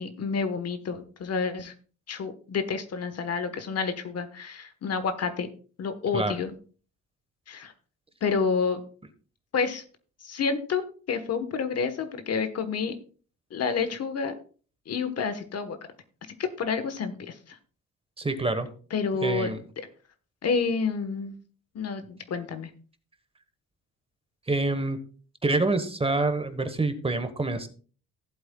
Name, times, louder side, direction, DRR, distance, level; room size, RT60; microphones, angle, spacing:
voice 1, 0.0-1.7 2.1-5.5 5.8-6.5 7.5-7.7 8.2-8.8 9.5-9.8 10.2-10.8 11.1-12.9 13.5-14.3 14.9-15.8 16.4-17.6 18.9-19.5 20.4-21.3 21.7-22.7, left 5 dB, 55° left, 10 dB, 1.3 m, -29 dB
voice 2, 18.2-18.7 19.2-19.6 24.5-25.0 25.4-27.7, right 2 dB, 20° right, 10 dB, 1.2 m, -26 dB
15.5 x 7.8 x 2.3 m, 0.39 s
cardioid pair, 90°, 30 cm